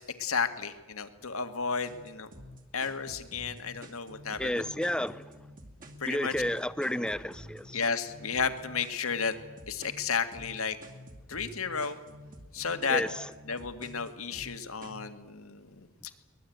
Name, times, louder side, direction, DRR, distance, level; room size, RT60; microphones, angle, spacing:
voice 1, 0.0-2.3 2.7-4.6 6.0-6.3 7.7-9.3 9.7-10.8 11.3-12.0 12.5-13.0 13.5-15.7, left 5 dB, 80° left, 2.0 m, -32 dB
sound 1, 1.9-15.1, equal, 40° right, 2.6 m, -49 dB
voice 2, 4.4-5.3 6.1-7.8 12.9-13.3, left 1 dB, 5° left, 0.7 m, -31 dB
23.5 x 20.5 x 9.3 m
head